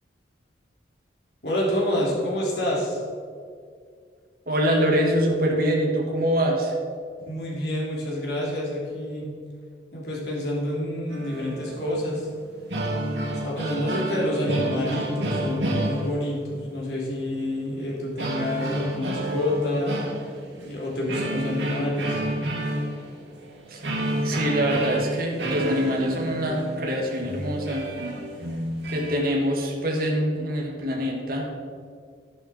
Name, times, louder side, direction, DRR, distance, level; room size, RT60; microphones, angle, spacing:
voice 1, 1.4-3.0 7.2-9.3 9.9-12.3 13.4-20.0 20.6-22.2, left 1 dB, 60° left, -4 dB, 3.4 m, -28 dB
voice 2, 4.5-6.7 23.7-23.9 24.2-27.8 28.9-31.5, equal, 50° right, 0 dB, 1.9 m, -24 dB
sound 1, 11.1-12.2 12.5-16.6 18.2-20.7 21.1-29.1, right 1 dB, 70° right, 2.2 m, -30 dB
11.5 x 11.0 x 4.4 m, 2.1 s
head